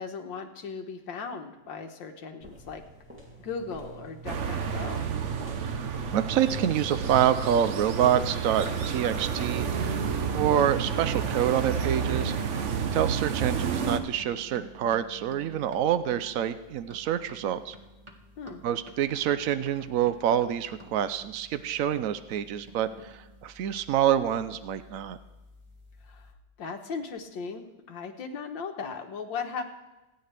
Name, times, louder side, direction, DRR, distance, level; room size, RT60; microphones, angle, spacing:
voice 1, 0.0-2.8 3.4-5.1 18.4-18.6 26.0-26.3 26.6-29.6, left 5 dB, 70° left, 5 dB, 1.8 m, -37 dB
sound 1, 2.4-9.2, right 1 dB, 5° right, 2.7 m, -47 dB
sound 2, 4.3-14.0, right 6 dB, 55° right, 0.9 m, -30 dB
voice 2, 6.1-10.0 10.3-12.6 12.9-17.7 18.6-25.2, right 10 dB, 80° right, 12 dB, 0.7 m, -27 dB
sound 3, 8.0-26.3, right 1 dB, 25° right, 0.6 m, -49 dB
26.5 x 9.2 x 3.4 m, 1.1 s
omnidirectional pair, 2.1 m